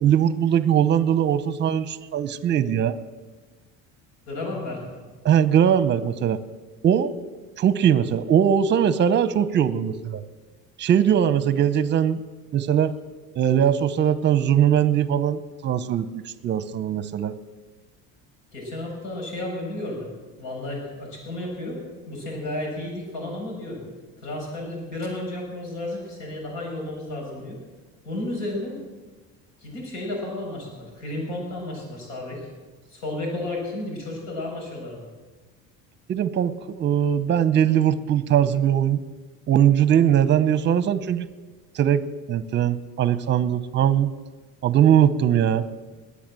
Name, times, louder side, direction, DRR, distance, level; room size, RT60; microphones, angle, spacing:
voice 1, 0.0-2.9 5.2-6.4 6.8-7.1 7.6-10.2 10.8-12.2 12.5-12.9 13.4-17.4 36.1-39.0 39.5-41.3 41.7-42.0 42.3-44.1 44.6-45.7, right 9 dB, 35° right, 15 dB, 0.8 m, -20 dB
voice 2, 4.3-4.8 18.5-20.1 20.4-21.8 22.1-23.8 24.2-27.6 28.0-28.8 29.6-32.5 32.9-35.1, left 1 dB, 75° left, 0 dB, 7.2 m, -32 dB
21.0 x 8.6 x 7.6 m, 1.3 s
cardioid pair, 145°, 32 cm